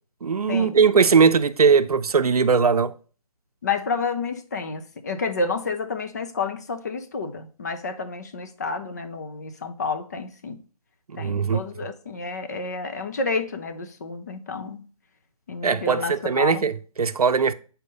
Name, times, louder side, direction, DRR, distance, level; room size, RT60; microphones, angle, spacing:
voice 1, 0.2-2.9 11.1-11.6 15.6-17.5, right 5 dB, 85° right, 0.6 m, -20 dB
voice 2, 3.6-10.6 11.2-14.8 15.5-16.6, left 4 dB, 30° left, 0.5 m, -30 dB
5.3 x 4.4 x 5.1 m
figure-of-eight pair, 160°, 19 cm